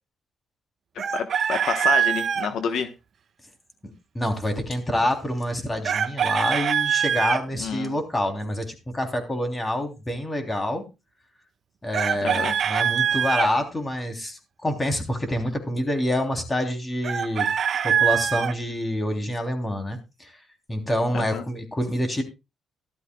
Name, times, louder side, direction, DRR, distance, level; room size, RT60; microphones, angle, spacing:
voice 1, 0.9-2.9 7.6-7.9 12.2-12.6 21.1-21.4, left 6 dB, 70° left, 8 dB, 1.0 m, -29 dB
Chicken rooster, 1.0-2.5 5.8-7.4 11.9-13.5 17.0-18.5, right 8 dB, 55° right, 1.2 m, -23 dB
voice 2, 4.1-10.8 11.8-17.5 17.8-20.3 20.7-22.2, left 1 dB, 20° left, 5 dB, 3.1 m, -27 dB
15.0 x 12.5 x 2.3 m, 0.26 s
cardioid pair, 90°, 0 cm